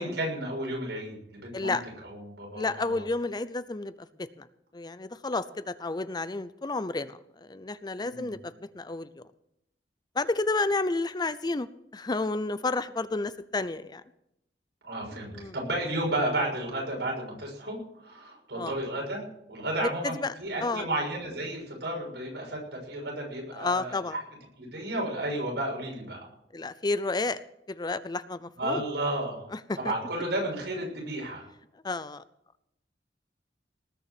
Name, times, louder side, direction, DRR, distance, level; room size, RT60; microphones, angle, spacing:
voice 1, 0.0-3.0 8.0-8.3 14.8-19.2 19.5-24.0 24.6-26.3 28.6-29.5 29.8-31.5, right 1 dB, 80° right, -1 dB, 6.6 m, -32 dB
voice 2, 2.6-3.9 4.2-4.5 4.7-9.1 10.2-11.7 11.9-14.0 15.3-15.5 18.5-18.7 20.0-20.3 20.6-20.9 23.5-24.2 26.5-27.4 27.7-28.8 29.5-29.8 31.8-32.2, left 3 dB, 25° left, 14 dB, 0.5 m, -31 dB
19.0 x 6.9 x 7.8 m, 0.80 s
head